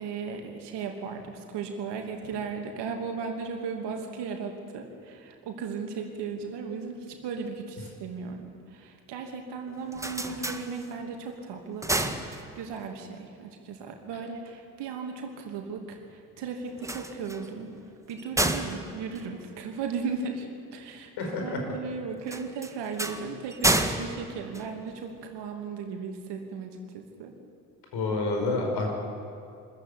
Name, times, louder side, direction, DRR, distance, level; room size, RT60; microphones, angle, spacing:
voice 1, 0.0-12.1 12.6-17.7 18.1-27.3, right 5 dB, 55° right, 3 dB, 2.9 m, -36 dB
sound 1, 9.7-11.2 11.6-12.9 16.7-20.2 22.2-25.3, right 1 dB, 5° right, 1.7 m, -31 dB
voice 2, 21.2-21.6 27.9-28.9, left 3 dB, 55° left, 1 dB, 5.4 m, -28 dB
24.5 x 14.0 x 8.7 m, 2.4 s
figure-of-eight pair, 50°, 48 cm